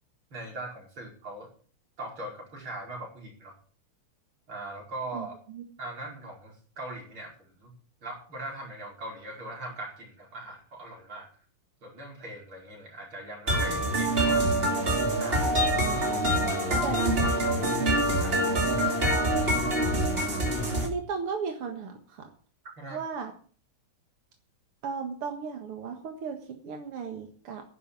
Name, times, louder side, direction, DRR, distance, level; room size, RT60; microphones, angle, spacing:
voice 1, 0.3-1.5 2.0-3.5 4.5-5.3 5.8-7.7 8.0-11.3 11.8-14.5 15.2-15.6 18.2-18.7 22.8-23.0, right 2 dB, 70° right, -1 dB, 5.9 m, -40 dB
voice 2, 5.1-5.6 15.8-17.3 20.8-22.3 22.9-23.3 24.8-27.6, right 6 dB, 90° right, 4 dB, 2.5 m, -36 dB
sound 1, 13.5-20.9, right 1 dB, 25° right, 3.1 m, -25 dB
11.5 x 10.0 x 7.0 m, 0.44 s
omnidirectional pair, 2.4 m